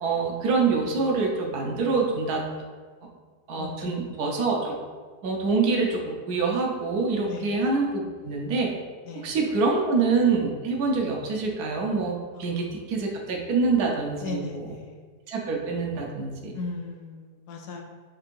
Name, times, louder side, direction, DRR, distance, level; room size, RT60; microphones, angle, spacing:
voice 1, 0.0-2.4 3.5-4.7 5.2-8.7 9.1-14.8 15.3-16.6, right 4 dB, 70° right, 0 dB, 1.2 m, -26 dB
voice 2, 3.6-4.1 7.2-7.5 9.1-9.3 12.3-12.7 14.2-14.9 16.5-17.8, left 3 dB, 75° left, 2 dB, 1.1 m, -37 dB
5.9 x 3.5 x 2.5 m, 1.5 s
omnidirectional pair, 1.8 m